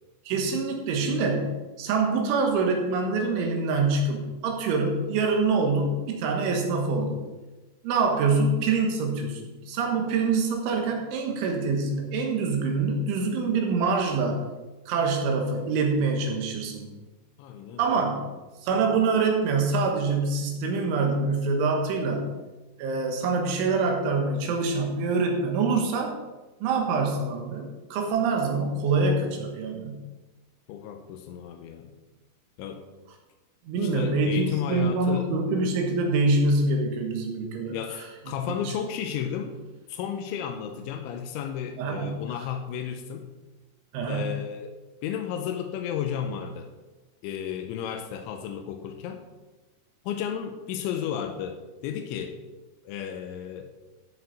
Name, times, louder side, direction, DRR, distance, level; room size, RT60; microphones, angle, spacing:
voice 1, 0.3-7.3 7.8-14.4 14.9-16.9 17.8-18.2 18.6-22.4 22.8-26.2 26.6-30.0 33.7-38.1 41.8-42.3 43.9-44.4, right 3 dB, 90° right, 2 dB, 3.9 m, -25 dB
voice 2, 17.4-18.1 30.7-31.9 32.6-32.8 33.7-35.3 37.7-39.6 39.9-43.3 44.0-44.7 45.0-46.7 47.2-49.2 50.1-52.4 52.9-53.7, left 8 dB, 90° left, 6 dB, 3.1 m, -33 dB
14.0 x 6.5 x 4.1 m, 1.2 s
omnidirectional pair, 5.4 m